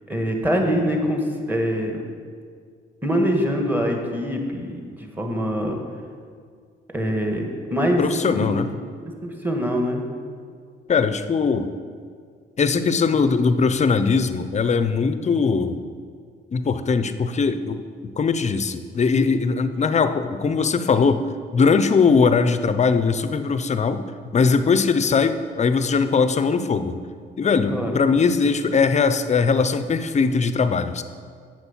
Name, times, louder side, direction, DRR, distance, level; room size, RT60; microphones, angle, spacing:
voice 1, 0.1-1.2 1.5-2.0 3.0-5.8 6.9-7.4 7.7-8.0 8.3-8.5 9.0-10.0 27.7-27.9, equal, 10° right, 2 dB, 1.6 m, -24 dB
voice 2, 8.0-8.7 10.9-11.7 12.6-15.8 16.5-17.8 18.2-21.3 21.5-27.0 27.4-31.0, left 5 dB, 35° left, 11 dB, 0.6 m, -20 dB
8.0 x 6.5 x 7.1 m, 2.1 s
cardioid pair, 90°, 20 cm